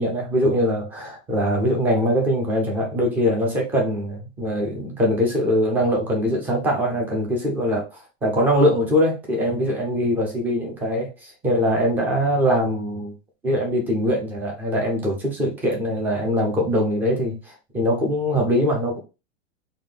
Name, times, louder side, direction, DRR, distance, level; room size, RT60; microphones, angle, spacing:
voice 1, 0.0-13.1 13.4-19.0, equal, 5° right, 0 dB, 0.3 m, -22 dB
3.7 x 2.2 x 3.2 m, 0.29 s
hypercardioid pair, 140°, 36 cm